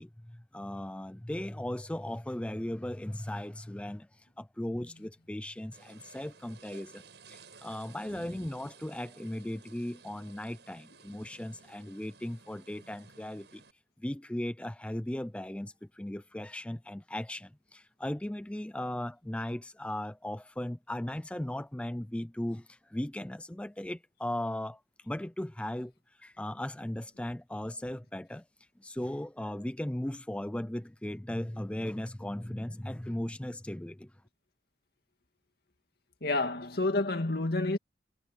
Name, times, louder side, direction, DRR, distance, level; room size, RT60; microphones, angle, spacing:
voice 1, 0.0-7.0 7.3-13.6 14.0-24.8 25.1-25.9 26.2-28.4 28.8-34.1, left 1 dB, 5° left, 0.4 m, -37 dB
sound 1, 5.7-13.7, right 5 dB, 70° right, 7.5 m, -56 dB
voice 2, 36.2-37.8, left 2 dB, 60° left, 2.3 m, -29 dB
head